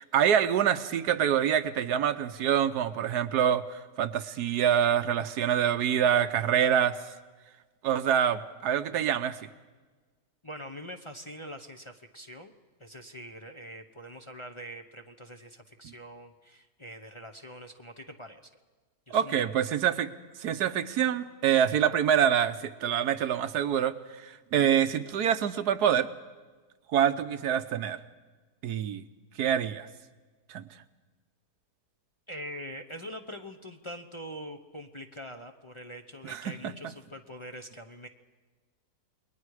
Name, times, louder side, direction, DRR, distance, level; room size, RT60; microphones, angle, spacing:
voice 1, 0.0-7.0 7.8-9.5 15.8-15.9 19.1-20.1 20.4-23.9 24.2-26.1 26.9-28.0 28.6-29.0 29.4-29.9 30.5-30.6 36.2-36.5, right 9 dB, 85° right, 11 dB, 1.4 m, -26 dB
voice 2, 10.4-12.5 12.8-18.5 19.1-19.6 32.3-38.1, equal, 25° left, 4 dB, 0.8 m, -43 dB
29.0 x 22.0 x 4.9 m, 1.3 s
omnidirectional pair, 1.7 m